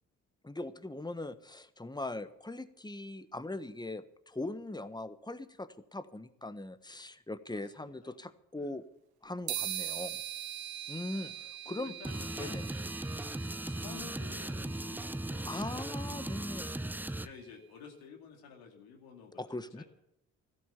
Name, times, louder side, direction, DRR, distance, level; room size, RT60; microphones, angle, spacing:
voice 1, 0.4-8.8 9.2-10.2 10.9-11.3 11.7-11.9 12.4-12.7 15.4-16.8 19.4-19.8, left 2 dB, 10° left, 12 dB, 1.4 m, -40 dB
voice 2, 7.5-8.8 9.5-10.0 11.0-12.6 13.3-15.5 16.0-16.8 17.1-19.8, left 6 dB, 80° left, 2 dB, 2.6 m, -53 dB
sound 1, 9.5-17.1, right 12 dB, 75° right, 1.3 m, -43 dB
sound 2, 12.0-17.3, right 1 dB, 5° right, 0.6 m, -38 dB
14.5 x 12.5 x 7.1 m, 0.78 s
hypercardioid pair, 45°, 37 cm